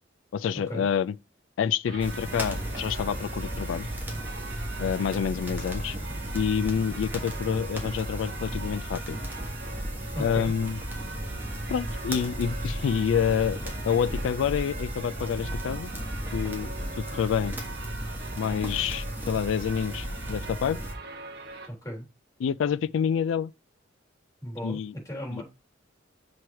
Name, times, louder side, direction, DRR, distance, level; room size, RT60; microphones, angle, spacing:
voice 1, 0.3-1.2 1.6-3.9 4.8-6.0 6.3-9.2 10.2-10.8 11.7-15.9 16.3-17.5 18.4-20.8 22.4-23.5 24.6-24.9 25.3-25.4, left 7 dB, 80° left, 0.3 m, -28 dB
sound 1, 1.8-21.7, right 3 dB, 55° right, 1.2 m, -42 dB
sound 2, 2.0-20.9, equal, 10° right, 1.4 m, -35 dB
voice 2, 10.1-10.5 21.7-22.0 24.4-24.8 25.0-25.4, equal, 20° left, 3.1 m, -35 dB
6.1 x 3.2 x 5.6 m
head